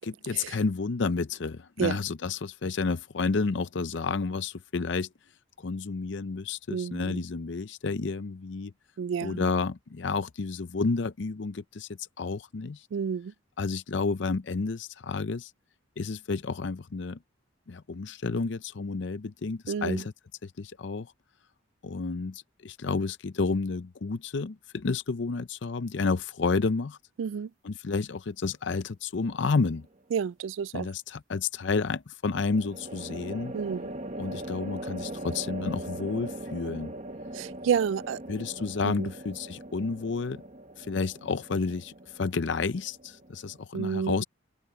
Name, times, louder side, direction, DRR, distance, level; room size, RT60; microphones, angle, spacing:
voice 1, 0.3-5.1 5.6-8.7 9.2-11.9 12.2-12.9 13.6-15.5 16.0-17.2 17.7-20.1 20.4-21.1 21.8-27.0 27.6-29.9 30.7-33.5 34.2-36.9 38.3-40.4 40.8-44.2, left 4 dB, 65° left, 0.6 m, -30 dB
voice 2, 6.7-7.2 9.0-9.4 12.9-13.3 19.7-20.0 27.2-27.5 30.1-30.9 33.5-33.9 37.3-38.2 38.8-39.1 43.7-44.2, right 7 dB, 75° right, 0.3 m, -30 dB
sound 1, 29.2-29.7 32.3-43.6, right 1 dB, 35° right, 1.0 m, -41 dB
open air
head